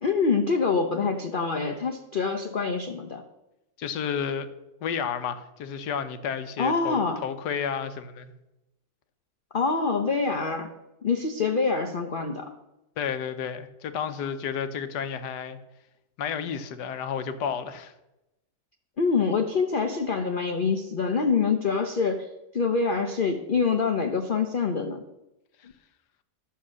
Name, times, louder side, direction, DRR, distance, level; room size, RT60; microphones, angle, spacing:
voice 1, 0.0-3.2 6.6-7.2 9.5-10.7 11.0-12.5 19.0-22.3 22.5-25.0, left 5 dB, 40° left, 0.8 m, -25 dB
voice 2, 3.8-4.5 4.8-8.3 13.0-15.6 16.2-17.9, left 7 dB, 80° left, 1.5 m, -31 dB
11.5 x 7.0 x 6.3 m
omnidirectional pair, 1.8 m